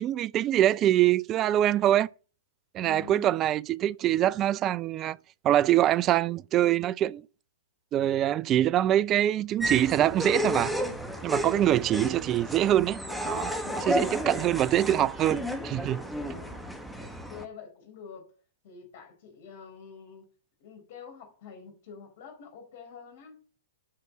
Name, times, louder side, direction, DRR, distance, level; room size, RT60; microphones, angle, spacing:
voice 1, 0.0-2.1 2.7-5.2 5.4-7.2 7.9-10.7 11.2-16.0, right 12 dB, 30° right, 0.3 m, -24 dB
voice 2, 2.8-3.3 11.4-11.9 13.6-14.2 16.2-18.3 18.6-20.3 20.6-23.4, left 6 dB, 50° left, 4.2 m, -47 dB
sound 1, 9.6-17.4, equal, ahead, 1.1 m, -32 dB
8.6 x 5.8 x 6.3 m
figure-of-eight pair, 115°, 0 cm